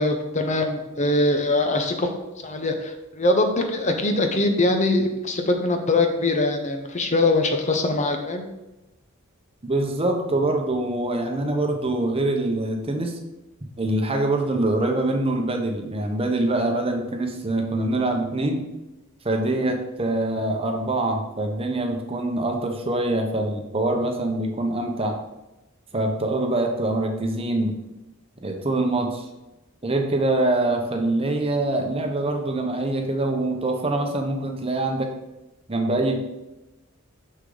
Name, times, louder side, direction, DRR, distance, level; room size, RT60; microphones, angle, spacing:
voice 1, 0.0-2.1 2.4-8.4, left 2 dB, 35° left, 5 dB, 0.8 m, -22 dB
voice 2, 9.6-13.2 13.8-18.6 19.2-25.2 25.9-27.8 28.4-29.3 29.8-35.1 35.7-36.2, right 2 dB, 25° right, 3 dB, 0.9 m, -24 dB
6.6 x 6.5 x 3.9 m, 0.99 s
head